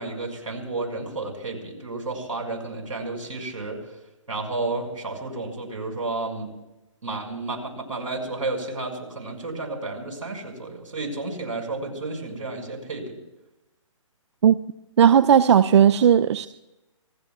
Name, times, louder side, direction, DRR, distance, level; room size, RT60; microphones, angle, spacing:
voice 1, 0.0-3.8 4.3-6.5 7.0-13.2, right 3 dB, 85° right, 2 dB, 5.9 m, -31 dB
voice 2, 15.0-16.5, right 8 dB, 55° right, 13 dB, 0.5 m, -16 dB
27.5 x 20.0 x 2.4 m, 1.0 s
hypercardioid pair, 145°, 17 cm